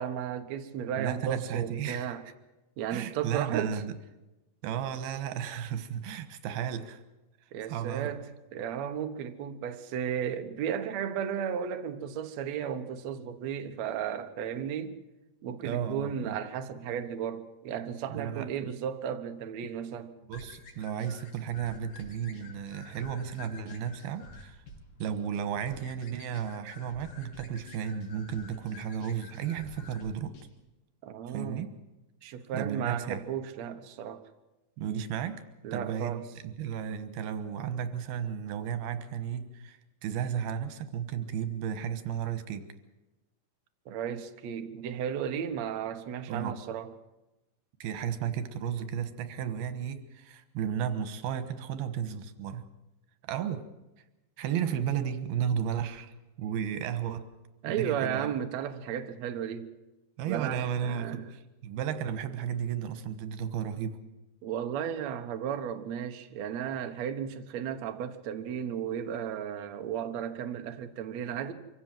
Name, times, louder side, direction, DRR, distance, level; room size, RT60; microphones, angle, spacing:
voice 1, 0.0-2.2 2.8-3.8 7.5-8.2 8.5-15.0 15.4-20.1 31.0-31.7 32.2-34.2 35.6-36.3 43.9-46.9 57.6-59.7 60.3-61.3 64.4-71.5, right 8 dB, 60° right, 2.1 m, -34 dB
voice 2, 1.0-2.2 2.9-4.0 4.6-7.0 7.7-8.1 15.6-16.4 18.1-18.5 20.3-24.6 25.0-30.3 31.3-31.7 32.5-33.2 34.8-35.4 35.7-42.6 46.3-46.6 47.8-52.7 53.2-53.7 54.4-57.3 57.7-58.3 60.2-64.0, right 8 dB, 90° right, 3.2 m, -34 dB
sound 1, 20.3-30.5, left 3 dB, 75° left, 4.8 m, -50 dB
25.0 x 16.0 x 7.7 m
omnidirectional pair, 4.3 m